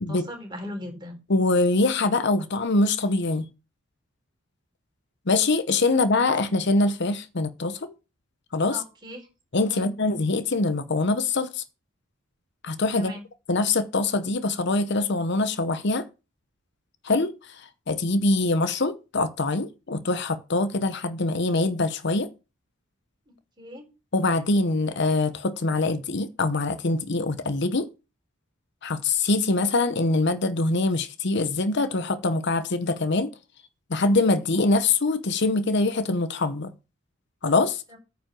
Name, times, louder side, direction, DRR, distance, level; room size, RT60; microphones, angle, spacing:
voice 1, 0.1-1.2 8.7-9.3 9.7-9.9 13.0-13.2 23.6-23.9 37.9-38.0, equal, 25° right, 4.1 m, -38 dB
voice 2, 1.3-3.5 5.3-7.9 8.5-8.8 9.5-11.6 12.6-13.1 13.5-16.0 17.0-17.3 17.9-22.3 24.1-27.9 28.8-33.3 33.9-36.7 37.4-37.8, left 2 dB, 60° left, 0.8 m, -24 dB
9.4 x 5.2 x 7.5 m
head